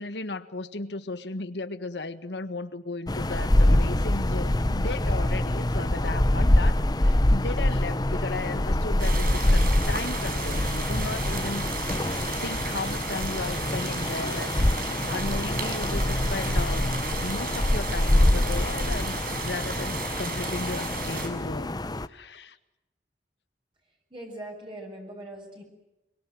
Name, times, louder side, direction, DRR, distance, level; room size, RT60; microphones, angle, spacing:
voice 1, 0.0-11.7 12.4-17.0 17.2-21.7 22.1-22.6, left 2 dB, 80° left, 11 dB, 1.6 m, -35 dB
sound 1, 3.1-22.1, left 1 dB, 25° left, 0.8 m, -25 dB
sound 2, 9.0-21.3, right 4 dB, 55° right, 6.1 m, -34 dB
voice 2, 24.1-25.6, right 1 dB, 30° right, 0 dB, 6.4 m, -40 dB
25.5 x 23.5 x 7.8 m, 0.94 s
head